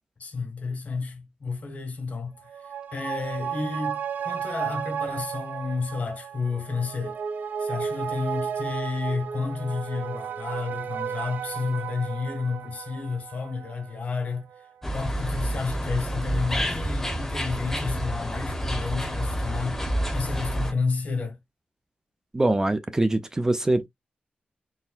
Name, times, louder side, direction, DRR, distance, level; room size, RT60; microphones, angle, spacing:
voice 1, 0.2-7.2 7.6-14.7 14.9-21.4, left 4 dB, 50° left, 1.6 m, -31 dB
sound 1, 2.4-15.2 15.6-15.7, right 7 dB, 70° right, 0.6 m, -34 dB
sound 2, 14.8-20.7, equal, 10° left, 0.9 m, -29 dB
voice 2, 22.3-23.9, right 2 dB, 15° right, 0.5 m, -23 dB
4.3 x 3.3 x 2.4 m
wide cardioid pair, 120°, 3 cm